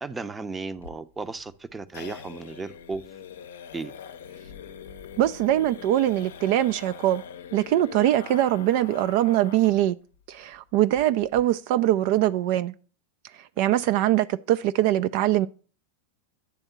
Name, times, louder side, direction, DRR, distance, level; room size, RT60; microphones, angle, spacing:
voice 1, 0.0-3.0 3.7-3.9, right 4 dB, 15° right, 0.6 m, -35 dB
sound 1, 0.7-9.8 10.1-10.2 10.5-10.6 11.0-11.4, left 8 dB, 75° left, 0.6 m, -43 dB
voice 2, 5.2-7.2 7.5-10.0 10.3-12.7 13.4-15.5, right 13 dB, 55° right, 0.3 m, -22 dB
10.0 x 3.6 x 6.8 m
hypercardioid pair, 95°, 0 cm